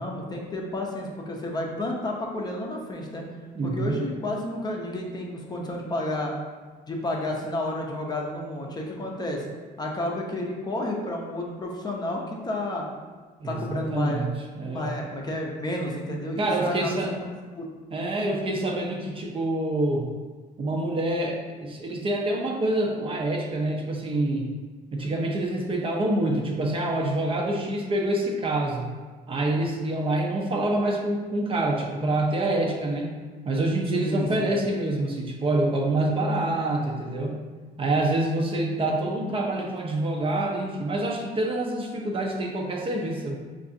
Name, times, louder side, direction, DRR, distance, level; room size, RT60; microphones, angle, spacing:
voice 1, 0.0-3.2 3.6-6.3 6.9-9.5 9.8-12.9 13.4-17.3 17.6-17.7 33.9-34.5, left 1 dB, 25° left, -1 dB, 0.5 m, -31 dB
voice 2, 3.5-4.0 13.4-14.9 16.4-17.1 17.9-20.1 20.6-24.5 24.9-28.9 29.3-33.1 33.4-37.3 37.8-43.4, right 1 dB, 35° right, 0 dB, 0.5 m, -26 dB
4.6 x 2.4 x 2.6 m, 1.4 s
cardioid pair, 110°, 17 cm